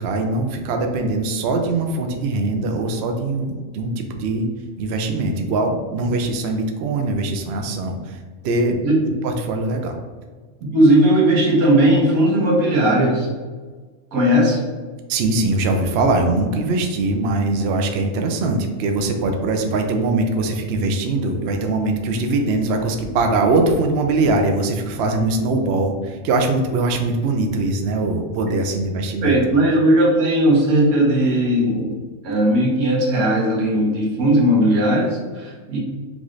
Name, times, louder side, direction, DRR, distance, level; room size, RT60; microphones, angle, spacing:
voice 1, 0.0-4.5 4.8-8.7 9.0-9.9 15.1-29.4, right 2 dB, 65° right, 4 dB, 0.7 m, -22 dB
voice 2, 10.7-13.3 14.1-14.6 29.2-32.0 32.2-35.8, right 1 dB, 85° right, -3 dB, 1.5 m, -17 dB
5.3 x 2.5 x 3.1 m, 1.4 s
omnidirectional pair, 1.5 m